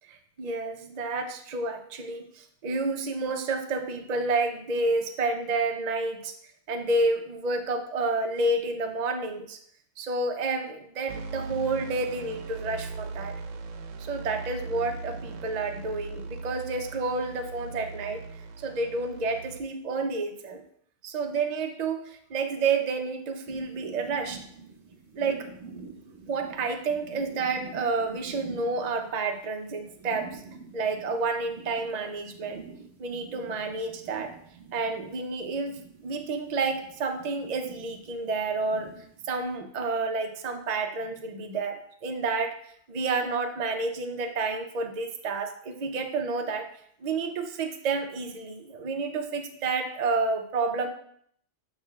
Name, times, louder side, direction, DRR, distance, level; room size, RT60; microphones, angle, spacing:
voice 1, 0.1-6.3 6.7-9.6 10.0-13.3 14.0-18.2 18.6-20.6 21.0-24.5 25.1-25.5 26.3-30.4 30.7-32.6 33.0-34.3 34.7-38.9 39.2-42.6 42.9-46.7 47.0-50.9, right 3 dB, 45° right, 5 dB, 0.6 m, -30 dB
sound 1, 11.1-19.6, right 4 dB, 85° right, 1.0 m, -39 dB
sound 2, 23.5-39.6, right 4 dB, 65° right, 1.3 m, -47 dB
8.8 x 5.9 x 2.3 m, 0.65 s
omnidirectional pair, 1.3 m